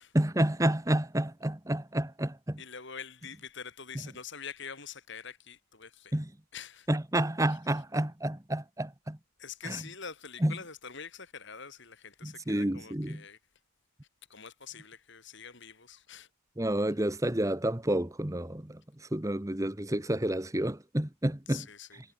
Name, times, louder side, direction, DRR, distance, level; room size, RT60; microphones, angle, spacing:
voice 1, 0.1-2.6 6.1-6.3 6.9-9.2 9.6-9.8 10.4-10.5 12.2-13.2 16.6-21.6, right 1 dB, 15° right, 1.1 m, -30 dB
voice 2, 2.6-6.2 6.5-6.9 7.4-7.8 9.4-13.4 14.3-16.3 21.5-22.0, left 6 dB, 55° left, 4.2 m, -45 dB
head